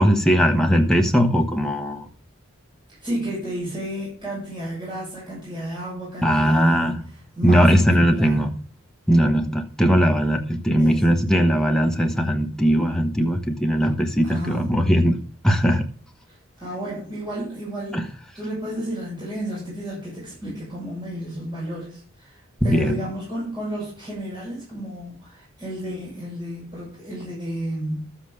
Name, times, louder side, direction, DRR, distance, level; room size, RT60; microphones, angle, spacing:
voice 1, 0.0-2.1 6.2-7.0 7.4-8.5 9.1-15.9 17.9-18.1 22.6-23.0, equal, 5° left, 1.1 m, -19 dB
voice 2, 3.0-6.9 7.4-8.5 10.8-11.0 14.2-14.7 16.6-18.0 18.3-28.2, equal, 20° right, 7.0 m, -32 dB
13.0 x 7.6 x 4.9 m
head